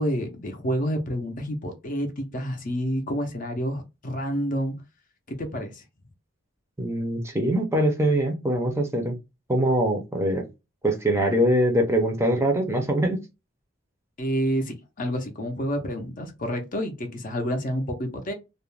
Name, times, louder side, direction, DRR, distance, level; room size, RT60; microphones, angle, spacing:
voice 1, 0.0-4.7 5.3-5.8 14.2-18.3, equal, 40° left, 0.6 m, -29 dB
voice 2, 6.8-9.2 9.5-10.4 10.8-13.2, right 1 dB, 15° right, 0.5 m, -23 dB
2.4 x 2.1 x 3.1 m
head